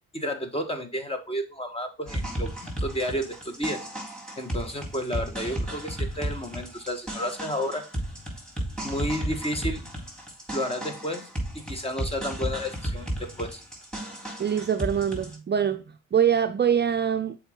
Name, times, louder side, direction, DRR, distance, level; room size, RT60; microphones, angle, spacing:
voice 1, 0.1-3.8 4.4-7.8 8.8-9.8 10.5-13.6, equal, 20° left, 1.8 m, -31 dB
sound 1, 2.1-15.3, right 1 dB, ahead, 4.1 m, -34 dB
voice 2, 14.4-17.4, right 8 dB, 35° right, 0.6 m, -24 dB
6.9 x 4.9 x 3.9 m
cardioid pair, 90°, 30 cm